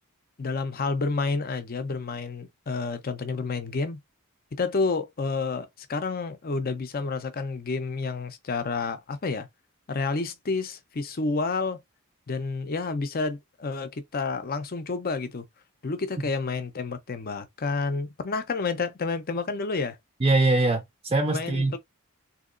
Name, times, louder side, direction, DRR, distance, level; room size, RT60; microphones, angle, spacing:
voice 1, 0.4-4.0 4.5-9.5 9.9-11.8 12.3-15.5 15.8-20.0 21.3-21.8, left 4 dB, 40° left, 0.6 m, -29 dB
voice 2, 20.2-21.8, right 2 dB, 25° right, 0.5 m, -23 dB
3.8 x 2.8 x 2.5 m
head